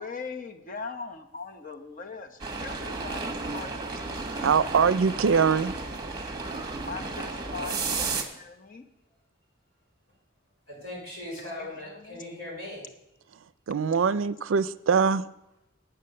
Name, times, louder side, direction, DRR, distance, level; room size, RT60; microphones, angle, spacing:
voice 1, 0.0-4.5 5.3-5.4 6.9-8.8 11.4-12.2, left 4 dB, 45° left, 6 dB, 1.0 m, -41 dB
sound 1, 2.4-8.2, right 3 dB, 20° right, 1.3 m, -33 dB
voice 2, 4.4-5.7 13.7-15.2, right 6 dB, 75° right, 17 dB, 0.4 m, -23 dB
voice 3, 10.7-12.8, left 1 dB, 80° left, -4 dB, 4.8 m, -39 dB
8.9 x 8.7 x 6.6 m, 0.85 s
head